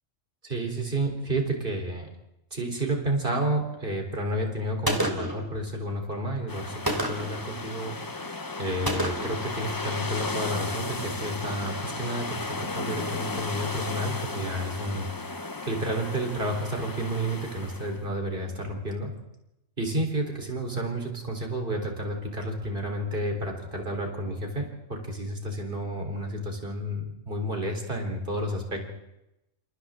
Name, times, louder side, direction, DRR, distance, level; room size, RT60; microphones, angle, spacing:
voice 1, 0.4-2.1 2.5-8.3 8.6-15.1 15.4-19.1 19.8-28.9, right 1 dB, 40° right, 2 dB, 4.2 m, -31 dB
Gunshot gunfire, 4.9-5.5 6.9-7.4 8.9-9.4, right 1 dB, 15° right, 2.9 m, -28 dB
sound 1, 6.5-18.0, left 3 dB, 20° left, 0.7 m, -35 dB
29.0 x 28.0 x 3.8 m, 0.88 s
omnidirectional pair, 1.4 m